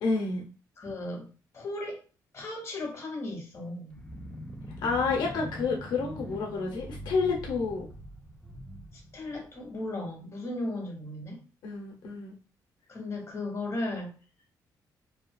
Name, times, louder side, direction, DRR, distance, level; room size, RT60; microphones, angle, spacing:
voice 1, 0.0-0.5 4.8-7.9 11.6-12.4, left 4 dB, 85° left, 0 dB, 0.6 m, -29 dB
voice 2, 0.8-1.3 1.5-2.0 2.3-4.0 8.9-11.4 12.9-14.1, left 2 dB, 40° left, 1 dB, 1.1 m, -36 dB
sound 1, 3.9-9.9, equal, 15° left, 0.5 m, -43 dB
2.7 x 2.3 x 2.2 m, 0.36 s
cardioid pair, 90°, 7 cm